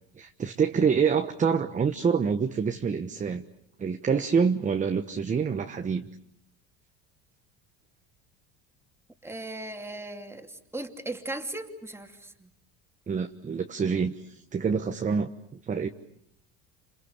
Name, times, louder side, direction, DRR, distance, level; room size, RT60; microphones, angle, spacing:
voice 1, 0.2-3.4 3.8-6.1 13.1-15.9, right 6 dB, 25° right, 7 dB, 1.2 m, -26 dB
voice 2, 9.2-12.5 15.1-15.2, right 2 dB, 10° right, 5 dB, 2.7 m, -38 dB
29.5 x 28.0 x 6.8 m, 0.74 s
cardioid pair, 120°, 31 cm